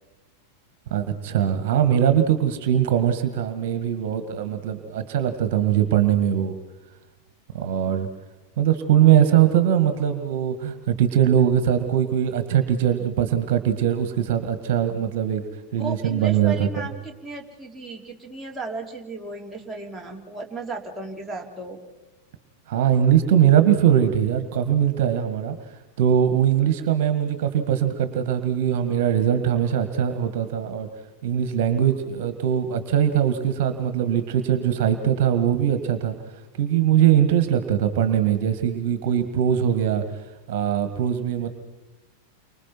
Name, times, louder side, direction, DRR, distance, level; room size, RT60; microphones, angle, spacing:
voice 1, 0.9-6.5 7.5-8.1 8.6-15.4 15.7-16.9 22.7-25.6 26.0-30.9 31.2-36.2 36.6-40.0 40.5-41.5, right 9 dB, 50° right, 9 dB, 1.8 m, -21 dB
voice 2, 15.8-21.8, right 3 dB, ahead, -3 dB, 3.7 m, -35 dB
30.0 x 25.0 x 4.6 m, 1.1 s
figure-of-eight pair, 90°, 0 cm